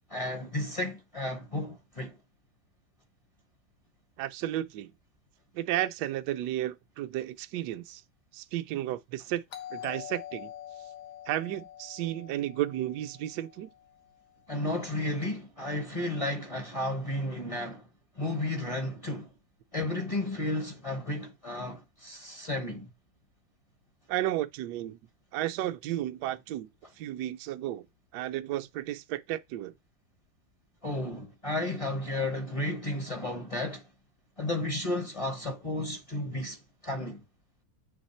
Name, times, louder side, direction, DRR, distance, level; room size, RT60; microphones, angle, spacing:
voice 1, 0.1-2.2 14.5-17.9 18.2-19.3 19.7-22.9 30.8-33.9 34.4-36.6 36.8-37.2, left 1 dB, 30° left, 0.7 m, -33 dB
voice 2, 4.2-4.9 5.5-8.0 8.3-9.4 9.7-10.5 11.3-13.7 24.1-25.0 25.3-26.7 27.0-27.8 28.1-29.7, right 13 dB, 75° right, 1.1 m, -33 dB
Doorbell, 9.5-14.1, left 11 dB, 70° left, 1.4 m, -45 dB
8.0 x 3.3 x 4.2 m
omnidirectional pair, 2.0 m